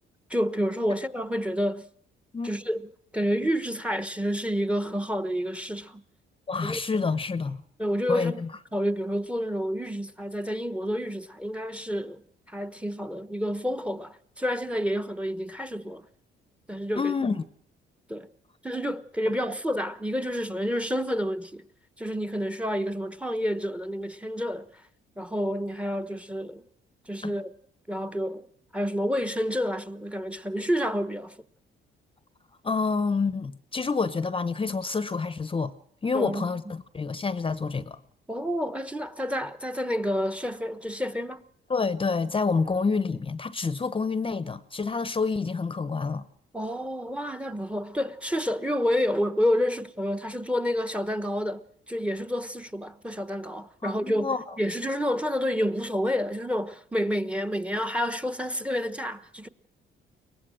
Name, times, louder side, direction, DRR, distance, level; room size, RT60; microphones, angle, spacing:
voice 1, 0.3-1.9 2.4-6.0 6.6-7.1 7.8-8.4 8.7-12.2 12.5-16.1 16.7-17.1 18.1-18.3 18.6-21.6 22.0-24.7 25.2-26.6 27.1-27.5 27.9-28.5 28.7-31.4 36.1-36.5 38.3-41.4 46.5-59.5, equal, 5° right, 1.1 m, -29 dB
voice 2, 6.5-7.6 8.1-8.5 17.0-17.4 27.2-27.3 32.6-35.7 36.0-38.0 41.7-46.2 53.8-54.5, left 4 dB, 25° left, 0.8 m, -28 dB
23.0 x 19.0 x 6.3 m
cardioid pair, 90°, 20 cm